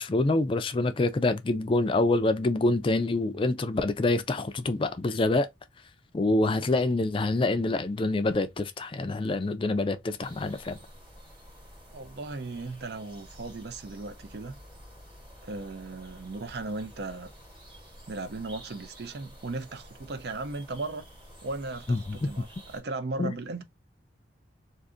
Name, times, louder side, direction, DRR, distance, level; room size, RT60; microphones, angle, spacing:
voice 1, 0.0-5.5 6.1-10.8 21.9-22.3 23.2-23.3, left 2 dB, 30° left, 0.4 m, -26 dB
sound 1, 10.2-22.8, equal, 25° right, 1.1 m, -50 dB
voice 2, 11.9-14.6 15.4-17.3 18.1-21.1 21.4-23.6, right 3 dB, 65° right, 0.5 m, -37 dB
2.5 x 2.5 x 3.5 m
head